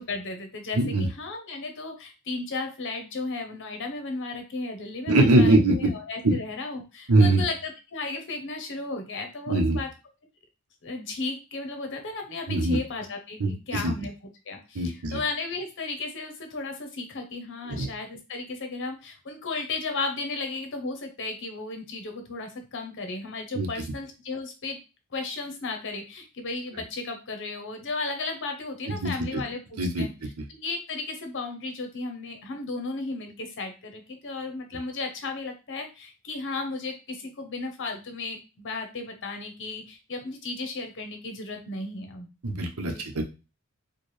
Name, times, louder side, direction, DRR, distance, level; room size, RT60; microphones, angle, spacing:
voice 1, 0.0-9.9 10.8-14.1 14.5-24.8 25.1-30.1 30.5-42.3 42.8-43.0, left 3 dB, 55° left, 5 dB, 0.9 m, -34 dB
voice 2, 0.7-1.1 5.1-5.9 6.2-6.4 7.1-7.4 9.5-9.8 12.5-12.8 13.4-13.9 14.7-15.2 17.7-17.9 23.5-23.7 28.9-29.4 29.8-30.3 42.4-43.2, right 2 dB, 75° right, 4 dB, 0.8 m, -22 dB
4.4 x 2.3 x 3.2 m, 0.30 s
head